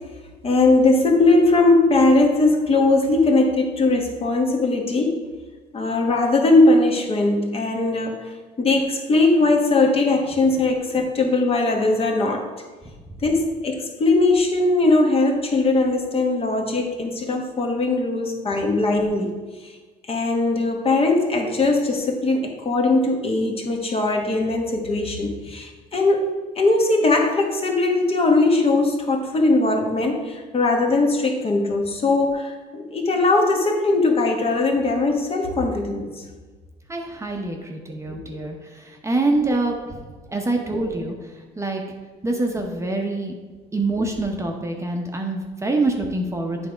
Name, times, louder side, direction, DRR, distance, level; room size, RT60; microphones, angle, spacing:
voice 1, 0.4-5.2 5.7-8.3 8.6-12.5 13.2-19.3 20.1-26.3 26.5-36.2 38.1-38.2, left 2 dB, 35° left, 2 dB, 1.1 m, -20 dB
voice 2, 36.9-40.0 40.3-41.8 42.2-43.4 43.7-46.7, right 2 dB, 15° right, 2 dB, 0.8 m, -25 dB
8.4 x 3.5 x 5.0 m, 1.3 s
cardioid pair, 110°, 17 cm